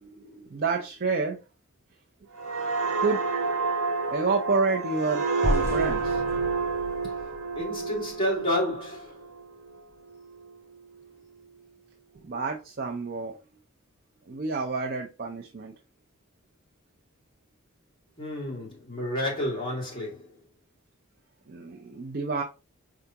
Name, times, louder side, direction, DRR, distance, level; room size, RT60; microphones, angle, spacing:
voice 1, 0.0-1.4 3.0-3.2 4.1-6.2 12.2-13.4 14.3-15.7 21.5-22.4, right 4 dB, 45° right, 0.5 m, -29 dB
sound 1, 2.3-9.8 10.2-10.5, right 4 dB, 85° right, 0.9 m, -29 dB
sound 2, 5.4-8.4, equal, 10° right, 0.8 m, -32 dB
voice 2, 7.6-9.3 18.2-20.4, left 1 dB, 25° left, 2.1 m, -30 dB
4.9 x 3.4 x 2.8 m
head